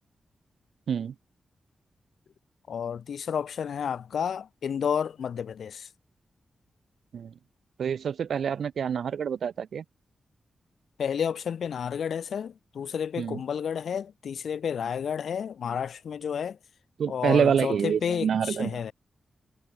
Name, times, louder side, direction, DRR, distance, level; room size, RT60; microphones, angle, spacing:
voice 1, 2.7-5.9 11.0-16.6 17.1-18.9, left 7 dB, 85° left, 3.7 m, -31 dB
voice 2, 7.8-9.8 13.2-13.4 17.0-18.9, right 7 dB, 85° right, 1.7 m, -27 dB
wide cardioid pair, 170°, 0 cm